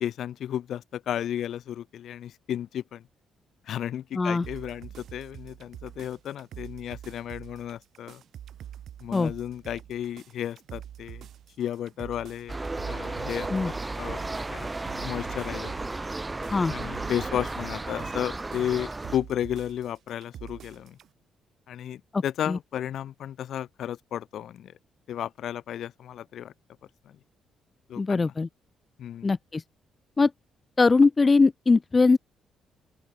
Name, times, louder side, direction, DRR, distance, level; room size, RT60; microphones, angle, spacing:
voice 1, 0.0-3.0 3.7-8.2 9.0-11.3 11.6-12.6 12.9-14.2 14.5-14.7 15.0-15.7 16.7-21.0 21.7-24.7 25.1-26.5 27.1-27.2 27.9-28.3 29.0-29.3, left 10 dB, 70° left, 0.9 m, -33 dB
voice 2, 4.1-4.5 9.1-9.3 13.5-13.7 16.5-16.7 22.1-22.6 28.0-28.5 29.2-29.6 30.2-30.3 30.8-32.2, left 4 dB, 30° left, 0.3 m, -21 dB
sound 1, 4.4-21.1, right 10 dB, 70° right, 2.0 m, -45 dB
sound 2, 12.5-19.2, right 2 dB, 20° right, 0.7 m, -34 dB
open air
cardioid pair, 90°, 0 cm